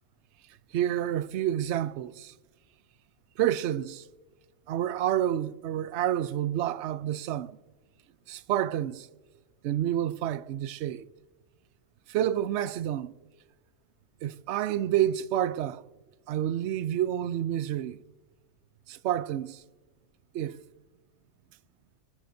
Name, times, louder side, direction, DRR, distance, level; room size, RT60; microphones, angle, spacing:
voice 1, 0.7-2.3 3.4-4.0 4.7-7.6 8.3-9.1 9.6-11.1 12.1-13.1 14.2-15.8 16.3-18.0 18.9-19.6 20.3-20.6, right 11 dB, 70° right, 0.8 m, -29 dB
25.5 x 11.5 x 2.7 m
omnidirectional pair, 1.3 m